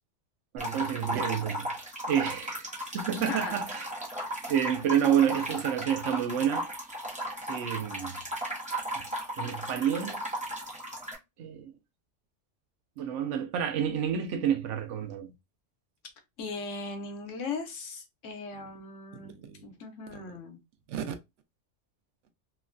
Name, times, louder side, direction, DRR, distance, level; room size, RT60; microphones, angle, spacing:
voice 1, 0.5-3.9 4.5-6.7 7.5-8.2 9.0-9.1 9.3-10.2 11.4-11.7 13.0-15.3 19.2-19.6 20.9-21.1, right 9 dB, 75° right, 0.9 m, -29 dB
sound 1, 0.6-11.1, right 1 dB, 5° right, 0.7 m, -36 dB
voice 2, 3.2-3.5 16.4-20.6, left 4 dB, 80° left, 1.1 m, -38 dB
3.1 x 2.2 x 2.4 m
omnidirectional pair, 1.3 m